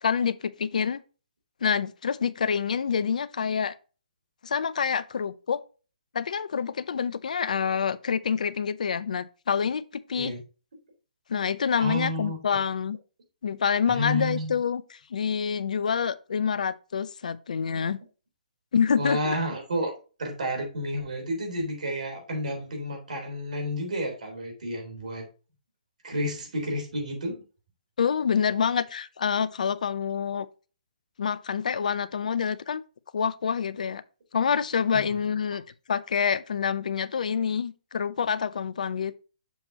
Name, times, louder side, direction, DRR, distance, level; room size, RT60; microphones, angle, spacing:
voice 1, 0.0-1.0 1.6-3.7 4.4-5.6 6.1-10.3 11.3-13.0 13.4-14.8 15.1-18.0 18.7-19.4 28.0-30.5 31.2-32.8 33.1-34.0 34.3-35.6 35.9-39.1, left 6 dB, 65° left, 0.5 m, -27 dB
voice 2, 11.8-12.6 13.9-14.5 19.0-19.9 20.2-25.2 26.0-27.4 34.9-35.2, equal, 65° right, 3.4 m, -31 dB
7.0 x 6.1 x 2.8 m
figure-of-eight pair, 135°, 4 cm